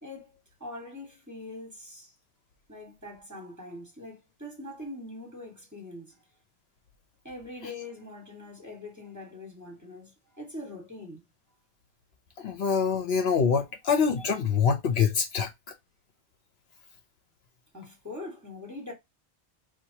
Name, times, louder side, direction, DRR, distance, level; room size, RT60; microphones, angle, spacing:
voice 1, 0.0-2.1 2.7-6.2 7.2-11.2 17.7-18.9, left 2 dB, 15° right, 1.5 m, -43 dB
voice 2, 12.4-15.5, left 6 dB, 65° left, 0.9 m, -25 dB
4.6 x 2.3 x 2.7 m
omnidirectional pair, 1.2 m